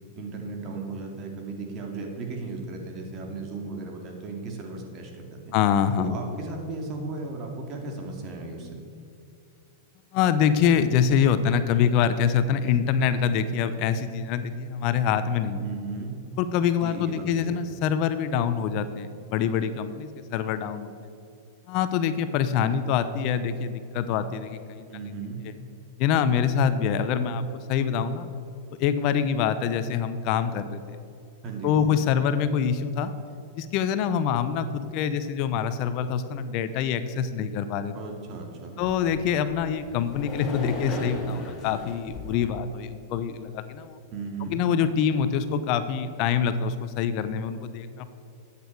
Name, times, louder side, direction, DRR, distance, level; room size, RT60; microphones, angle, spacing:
voice 1, 0.2-5.5 6.0-8.8 15.6-16.1 16.8-17.6 24.9-25.4 31.4-32.0 37.9-38.8 44.1-44.6, right 3 dB, 40° right, 2 dB, 2.5 m, -36 dB
voice 2, 5.5-6.2 10.1-15.6 16.4-20.9 21.7-24.9 26.0-28.3 28.8-31.0 31.6-33.1 33.5-37.9 38.8-44.0 44.4-48.1, left 7 dB, 50° left, 11 dB, 0.7 m, -25 dB
sound 1, 38.8-42.5, left 1 dB, 20° left, 2.8 m, -37 dB
13.0 x 8.5 x 4.7 m, 2.7 s
hypercardioid pair, 125°, 0 cm